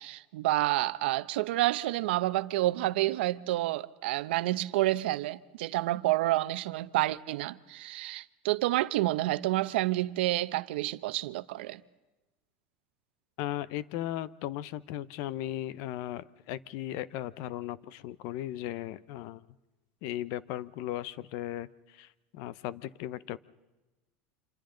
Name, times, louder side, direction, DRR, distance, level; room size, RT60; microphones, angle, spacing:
voice 1, 0.0-11.8, right 16 dB, 85° right, 0.7 m, -29 dB
voice 2, 13.4-19.5 20.0-23.4, left 13 dB, 60° left, 0.7 m, -37 dB
30.0 x 26.5 x 3.9 m
supercardioid pair, 135°, 6 cm